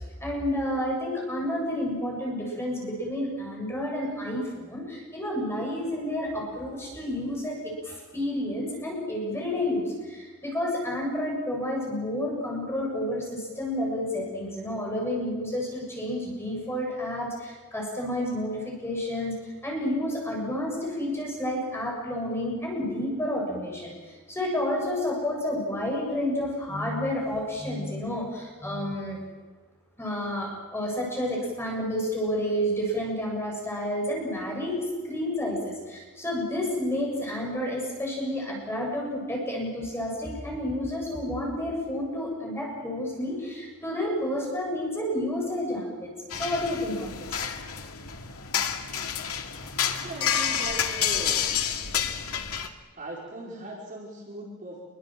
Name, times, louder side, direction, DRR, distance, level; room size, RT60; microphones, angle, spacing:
voice 1, 0.2-29.2 30.0-47.3, left 1 dB, 10° left, -1 dB, 7.4 m, -30 dB
sound 1, 46.3-52.7, left 8 dB, 75° left, 2.4 m, -29 dB
voice 2, 50.0-51.9 53.0-54.8, right 1 dB, 40° right, -3 dB, 4.9 m, -39 dB
28.0 x 23.0 x 7.7 m, 1.4 s
head